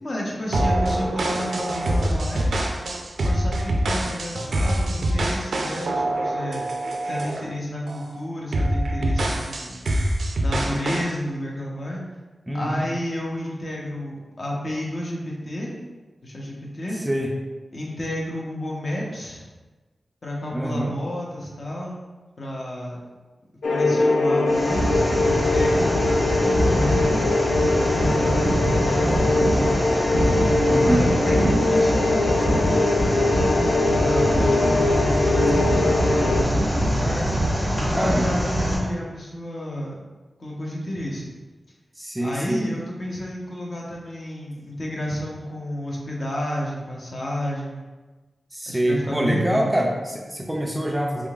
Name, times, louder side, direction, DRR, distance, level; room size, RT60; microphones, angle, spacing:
voice 1, 0.0-2.5 3.2-6.6 7.0-9.8 10.4-12.0 12.5-15.7 16.2-17.0 17.7-19.5 20.2-22.0 22.4-23.0 23.7-24.9 25.3-27.3 27.8-30.0 30.8-40.0 40.4-41.3 42.2-47.8 48.7-49.9, left 1 dB, 45° left, -3 dB, 0.8 m, -31 dB
sound 1, 0.5-7.5 7.9-8.1 8.5-11.1, right 1 dB, 85° right, 0.4 m, -25 dB
voice 2, 12.5-12.9 16.9-17.3 20.5-20.9 30.7-31.1 37.9-38.5 42.0-42.6 48.5-51.3, right 1 dB, 10° right, 0 dB, 0.4 m, -25 dB
sound 2, 23.6-36.4, left 2 dB, 85° left, 0.3 m, -22 dB
sound 3, 24.5-38.8, equal, 25° left, 1.5 m, -24 dB
3.6 x 3.5 x 2.4 m, 1.2 s
wide cardioid pair, 120°, 0 cm